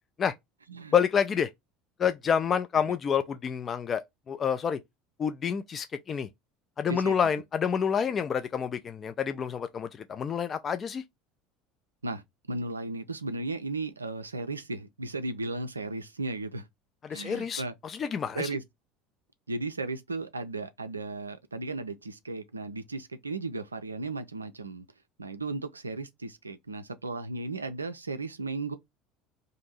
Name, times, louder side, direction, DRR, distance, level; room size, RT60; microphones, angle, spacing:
voice 1, 0.9-1.5 2.0-4.0 4.3-4.8 5.2-6.3 6.8-11.0 17.0-18.5, left 7 dB, 30° left, 0.3 m, -28 dB
voice 2, 12.5-16.7 17.1-17.7 18.3-18.6 19.5-24.9 25.2-28.8, right 3 dB, 85° right, 0.3 m, -35 dB
2.6 x 2.6 x 4.0 m
figure-of-eight pair, 65°, 0 cm